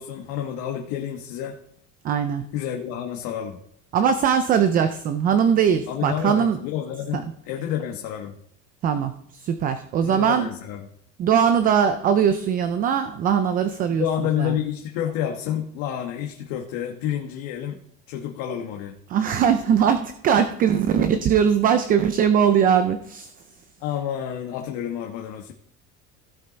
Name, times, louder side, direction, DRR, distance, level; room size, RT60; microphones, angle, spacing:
voice 1, 0.0-1.6 2.5-3.6 5.9-8.3 10.0-10.8 13.9-17.8 18.1-18.9 21.0-21.1 23.8-25.5, left 10 dB, 60° left, 2 dB, 1.3 m, -29 dB
voice 2, 2.0-2.5 3.9-6.6 7.1-7.2 8.8-10.5 11.2-14.6 19.1-23.3, right 8 dB, 25° right, 10 dB, 0.4 m, -21 dB
16.0 x 5.5 x 4.0 m, 0.70 s
cardioid pair, 170°, 36 cm